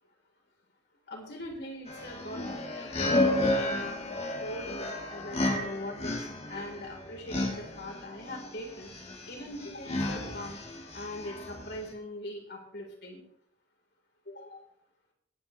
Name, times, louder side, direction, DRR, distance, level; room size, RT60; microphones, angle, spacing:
voice 1, 1.1-4.0 4.4-6.1 6.5-8.9 9.3-10.6 10.9-13.2 14.3-14.6, left 1 dB, 60° left, 1 dB, 4.0 m, -41 dB
sound 1, 1.9-11.9, left 1 dB, 35° left, 1.8 m, -32 dB
18.0 x 9.5 x 3.3 m, 0.67 s
head